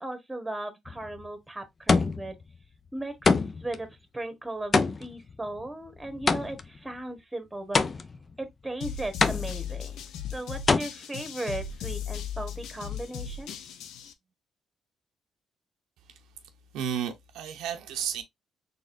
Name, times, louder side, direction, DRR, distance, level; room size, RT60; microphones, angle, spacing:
voice 1, 0.0-2.4 2.9-7.8 8.4-10.0 10.3-13.5, right 2 dB, 10° right, 1.2 m, -37 dB
sound 1, 0.9-1.3 1.9-2.4 3.2-3.8 4.7-6.8 7.7-8.3 9.2-9.8 10.7-10.8, left 4 dB, 35° left, 0.4 m, -25 dB
sound 2, 8.8-14.1, left 8 dB, 85° left, 0.5 m, -37 dB
voice 2, 16.7-18.2, right 8 dB, 90° right, 0.6 m, -32 dB
4.1 x 3.5 x 2.5 m
cardioid pair, 90°, 0 cm